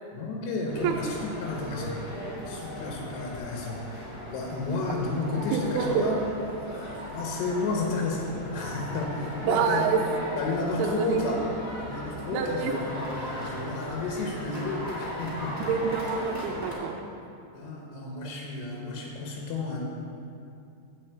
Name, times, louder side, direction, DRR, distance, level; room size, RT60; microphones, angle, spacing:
voice 1, 0.1-2.0 2.5-6.3 6.7-9.9 10.4-11.5 11.8-15.7 17.5-19.8, left 3 dB, 85° left, -1 dB, 3.2 m, -32 dB
sound 1, 0.7-16.7, equal, 20° left, 1.0 m, -38 dB
voice 2, 5.5-6.1 9.4-10.0 10.8-11.2 12.3-12.7 15.7-17.0, right 6 dB, 80° right, 2 dB, 2.5 m, -26 dB
7.9 x 5.5 x 7.7 m, 2.6 s
omnidirectional pair, 4.8 m